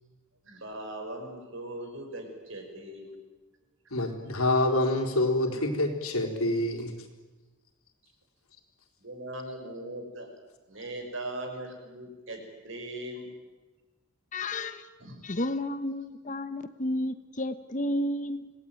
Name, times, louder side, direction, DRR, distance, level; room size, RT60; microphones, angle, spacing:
voice 1, 0.4-3.1 9.0-10.3 10.7-13.3 15.0-15.2, right 1 dB, 60° right, 4 dB, 5.8 m, -39 dB
voice 2, 3.9-6.9, left 1 dB, 90° left, 3 dB, 4.2 m, -26 dB
voice 3, 14.3-14.9 15.2-18.5, left 1 dB, 35° left, 11 dB, 1.1 m, -32 dB
26.5 x 18.5 x 9.2 m, 1.2 s
head